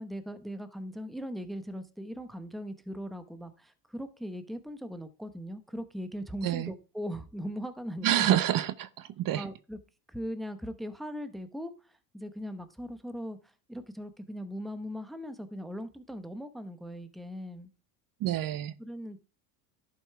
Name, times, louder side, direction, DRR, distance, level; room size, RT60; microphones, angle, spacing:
voice 1, 0.0-8.4 9.3-9.8 10.1-17.7 18.8-19.2, equal, ahead, 0.8 m, -39 dB
voice 2, 8.0-9.5 18.2-18.7, right 12 dB, 45° right, 0.8 m, -28 dB
11.0 x 5.4 x 4.6 m
supercardioid pair, 105°, 48 cm